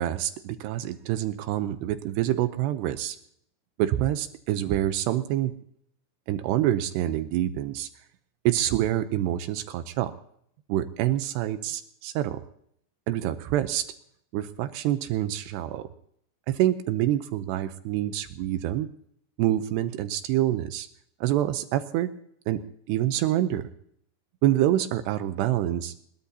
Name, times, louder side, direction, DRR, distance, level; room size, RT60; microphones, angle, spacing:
voice 1, 0.0-3.2 3.8-5.5 6.3-7.9 8.5-10.1 10.7-12.4 13.1-13.8 14.3-15.9 16.5-18.9 19.4-20.9 21.2-22.1 22.5-22.6 22.9-23.7 24.4-25.9, right 13 dB, 80° right, 10 dB, 2.6 m, -26 dB
23.0 x 21.0 x 2.8 m, 0.67 s
omnidirectional pair, 5.4 m